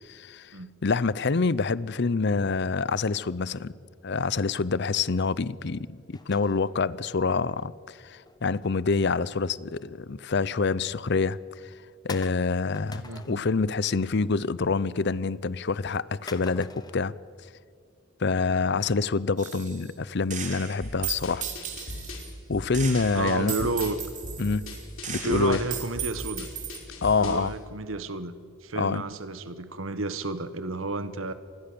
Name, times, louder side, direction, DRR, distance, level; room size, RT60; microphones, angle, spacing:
voice 1, 0.1-0.5 0.8-3.7 4.0-11.4 12.0-17.1 18.2-21.4 22.5-23.6 24.4-24.7 25.1-25.6 27.0-27.5 28.8-29.0, left 4 dB, 55° left, 0.7 m, -26 dB
sound 1, 6.1-7.7 8.3-9.5 9.9-10.2 10.7-10.8 11.3-11.4 12.1-13.6 13.9-14.3 14.6-15.3 16.3-17.0, left 3 dB, 20° left, 1.3 m, -45 dB
voice 2, 13.0-13.4 23.1-24.0 25.2-26.5 27.2-31.3, right 2 dB, 80° right, 1.5 m, -31 dB
Gunshot gunfire, 19.4-19.9 20.3-22.3 22.7-26.8, right 9 dB, 40° right, 3.2 m, -36 dB
sound 2, 20.8-27.5, left 1 dB, 85° left, 5.3 m, -39 dB
26.0 x 20.5 x 7.0 m
head